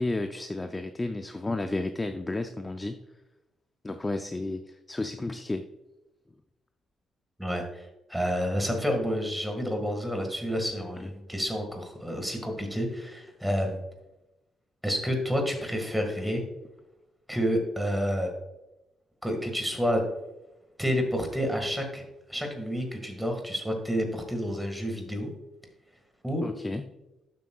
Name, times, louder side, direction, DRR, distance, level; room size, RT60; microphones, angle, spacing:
voice 1, 0.0-3.0 3.8-5.7 11.0-11.1 26.4-26.8, left 2 dB, 15° left, 7 dB, 0.4 m, -32 dB
voice 2, 7.4-13.8 14.8-16.4 17.3-18.3 19.2-20.0 20.8-22.0 22.3-25.3 26.2-26.4, equal, ahead, 3 dB, 1.8 m, -29 dB
11.5 x 7.4 x 2.3 m, 0.97 s
cardioid pair, 135°, 0 cm